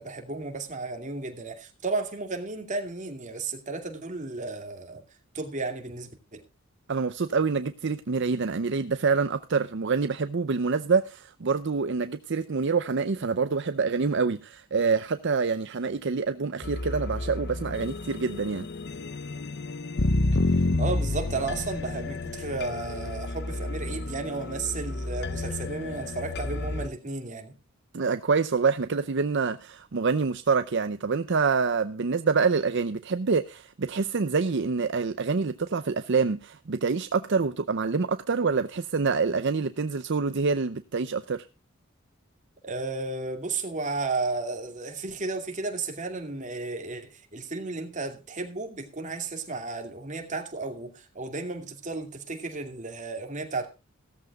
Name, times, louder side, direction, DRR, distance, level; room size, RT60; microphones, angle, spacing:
voice 1, 0.0-5.0 5.3-6.4 20.8-27.5 42.6-53.7, right 3 dB, 35° right, 2.5 m, -33 dB
voice 2, 6.9-18.7 27.9-41.5, right 4 dB, 60° right, 0.6 m, -26 dB
sound 1, 16.6-26.9, left 2 dB, 55° left, 0.8 m, -30 dB
17.0 x 13.5 x 2.3 m
head